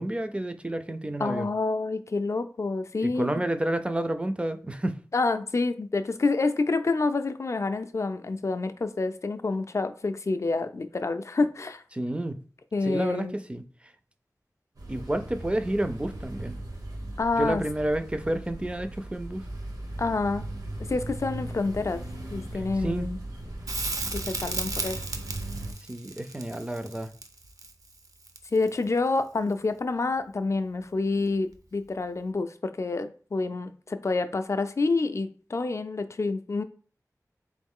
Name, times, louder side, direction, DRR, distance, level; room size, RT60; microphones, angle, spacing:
voice 1, 0.0-1.5 3.0-5.0 11.9-12.4 12.8-13.6 14.9-16.6 17.3-19.4 22.8-23.1 25.9-27.1, right 1 dB, 20° right, 0.4 m, -30 dB
voice 2, 1.2-3.4 5.1-11.8 12.7-13.4 17.2-17.6 20.0-20.5 20.9-22.0 22.3-23.2 24.1-25.0 28.5-36.6, left 3 dB, 50° left, 0.4 m, -28 dB
sound 1, 14.8-25.7, right 1 dB, 85° right, 1.1 m, -38 dB
Crackle, 23.7-28.8 31.5-31.6, right 3 dB, 65° right, 0.5 m, -35 dB
3.8 x 3.1 x 3.6 m
wide cardioid pair, 75°, 6 cm